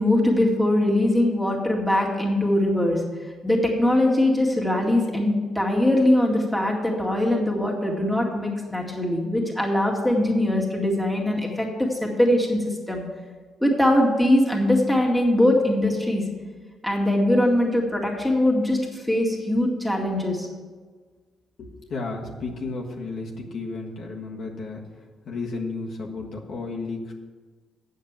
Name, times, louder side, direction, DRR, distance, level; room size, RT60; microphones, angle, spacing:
voice 1, 0.0-3.0 3.4-12.6 12.9-13.0 13.6-16.2 16.8-20.5, left 1 dB, ahead, -3 dB, 2.0 m, -21 dB
voice 2, 21.6-24.8 25.3-27.1, left 3 dB, 65° left, -1 dB, 1.5 m, -33 dB
8.1 x 6.5 x 7.4 m, 1.4 s
cardioid pair, 90°, 0 cm